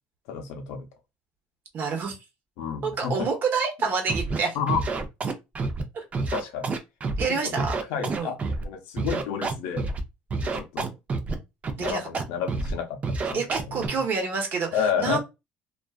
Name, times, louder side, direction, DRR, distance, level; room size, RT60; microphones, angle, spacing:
voice 1, 0.3-0.9 2.6-3.3 4.5-4.8 6.3-6.7 7.3-7.6 7.9-9.9 10.4-10.9 11.8-14.0 14.7-15.2, left 6 dB, 85° left, 0.6 m, -30 dB
voice 2, 1.7-2.1 2.8-4.6 5.9-6.0 7.2-7.8 8.1-8.3 11.8-12.1 13.3-15.2, right 5 dB, 50° right, 1.0 m, -28 dB
Scratching (performance technique), 4.1-4.4 4.7-5.8 6.1-7.2 7.6-8.7 9.0-10.0 10.3-11.3 11.6-12.2 12.5-12.7 13.0-13.9, right 3 dB, 35° right, 0.5 m, -28 dB
2.4 x 2.3 x 2.4 m
supercardioid pair, 100°, 4 cm